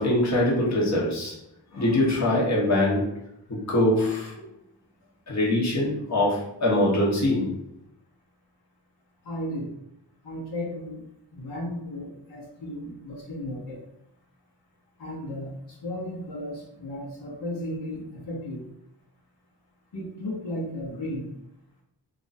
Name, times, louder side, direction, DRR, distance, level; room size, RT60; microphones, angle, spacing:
voice 1, 0.0-1.3 1.7-3.1 3.5-4.3 5.3-7.5, left 1 dB, 40° left, -4 dB, 1.1 m, -23 dB
voice 2, 9.2-9.7 10.2-11.0 11.3-13.8 15.0-18.7 19.9-21.3, left 1 dB, 65° left, -5 dB, 1.1 m, -34 dB
3.0 x 2.5 x 4.0 m, 0.80 s
wide cardioid pair, 100°, 43 cm